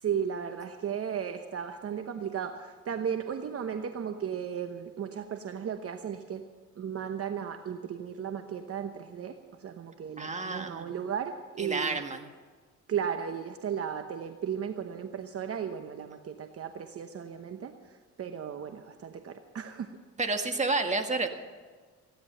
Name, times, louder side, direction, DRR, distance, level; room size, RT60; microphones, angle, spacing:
voice 1, 0.0-6.4 6.8-12.0 12.9-17.8 18.2-20.0, right 8 dB, 50° right, 7 dB, 1.0 m, -35 dB
voice 2, 10.2-10.9 11.6-12.3 20.2-21.3, right 3 dB, 25° right, 5 dB, 1.7 m, -30 dB
16.0 x 10.5 x 6.7 m, 1.5 s
cardioid pair, 90°, 30 cm